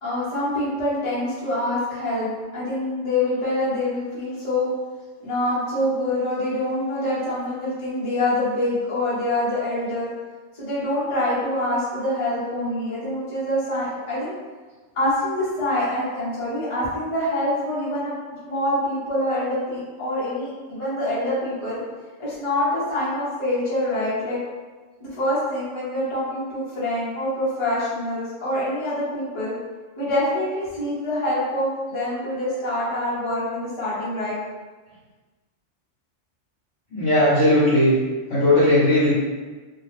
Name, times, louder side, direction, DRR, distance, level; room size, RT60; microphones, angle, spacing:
voice 1, 0.0-4.7 5.2-10.1 10.6-14.3 14.9-18.2 18.4-21.8 22.2-24.4 25.0-29.5 30.0-34.4, left 1 dB, 30° left, -10 dB, 1.0 m, -25 dB
voice 2, 36.9-37.9 38.3-39.2, left 1 dB, 55° left, -11 dB, 1.2 m, -17 dB
2.7 x 2.3 x 3.2 m, 1.3 s
omnidirectional pair, 1.3 m